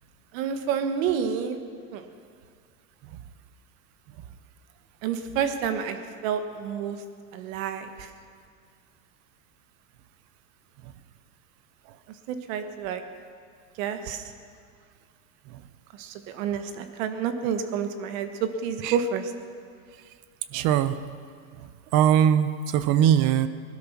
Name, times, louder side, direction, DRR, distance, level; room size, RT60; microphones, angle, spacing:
voice 1, 0.3-1.6 1.9-2.0 5.0-6.0 6.2-7.0 7.3-8.1 12.3-13.0 13.8-14.2 16.0-19.3, right 7 dB, 60° right, 8 dB, 1.6 m, -29 dB
voice 2, 20.5-21.0 21.9-23.5, right 10 dB, 45° right, 13 dB, 0.9 m, -21 dB
19.5 x 12.5 x 6.1 m, 2.1 s
supercardioid pair, 140°, 44 cm